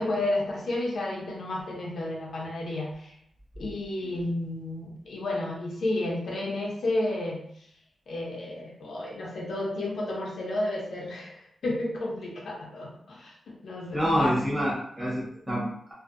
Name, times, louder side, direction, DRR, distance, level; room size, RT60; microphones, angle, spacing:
voice 1, 0.0-3.1 3.6-7.4 8.1-14.4, left 1 dB, 65° left, -3 dB, 0.6 m, -31 dB
voice 2, 13.9-15.9, equal, 10° right, -5 dB, 0.8 m, -27 dB
2.5 x 2.1 x 2.4 m, 0.69 s
wide cardioid pair, 155°, 0 cm